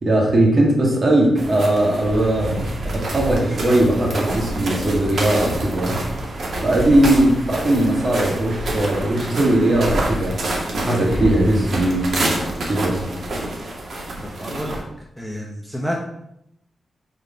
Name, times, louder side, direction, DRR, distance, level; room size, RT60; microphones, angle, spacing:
voice 1, 0.0-6.0 6.6-10.4 10.8-12.1 12.7-13.0, right 1 dB, 40° right, -2 dB, 2.4 m, -19 dB
sound 1, 1.4-14.8, right 1 dB, 60° right, 1.9 m, -27 dB
sound 2, 6.7-9.1 9.7-12.8 13.2-13.7, left 1 dB, 75° left, 1.3 m, -30 dB
voice 2, 14.2-14.8 15.2-16.0, equal, ahead, -1 dB, 1.0 m, -29 dB
6.6 x 4.3 x 5.6 m, 0.78 s
wide cardioid pair, 120°, 0 cm